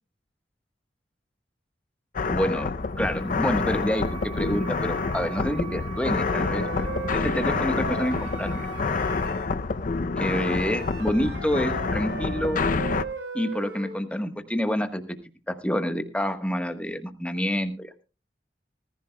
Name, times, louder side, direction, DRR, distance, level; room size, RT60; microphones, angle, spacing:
sound 1, 2.2-13.0, left 4 dB, 50° left, 0.5 m, -28 dB
voice 1, 2.3-6.7 7.1-8.7 10.2-12.7 13.3-15.0 15.5-18.0, equal, 5° left, 8 dB, 1.1 m, -28 dB
sound 2, 2.7-9.2, right 12 dB, 25° right, 1.3 m, -43 dB
Wind instrument woodwind instrument, 6.0-9.5 10.3-14.0, right 3 dB, 75° right, 3.5 m, -38 dB
19.5 x 14.5 x 2.2 m, 0.31 s
head